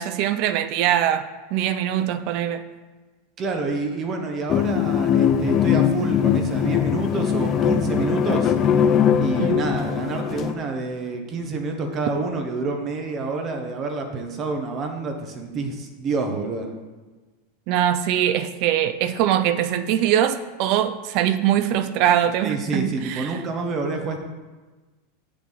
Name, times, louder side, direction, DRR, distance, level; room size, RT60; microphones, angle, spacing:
voice 1, 0.0-2.6 9.4-9.6 17.7-23.4, right 11 dB, 55° right, 12 dB, 0.5 m, -22 dB
voice 2, 3.4-8.5 9.2-16.7 22.4-24.2, right 3 dB, 35° right, 4 dB, 1.2 m, -28 dB
sound 1, 4.5-10.5, left 8 dB, 35° left, 0.5 m, -21 dB
7.3 x 6.8 x 4.0 m, 1.3 s
supercardioid pair, 125°, 0 cm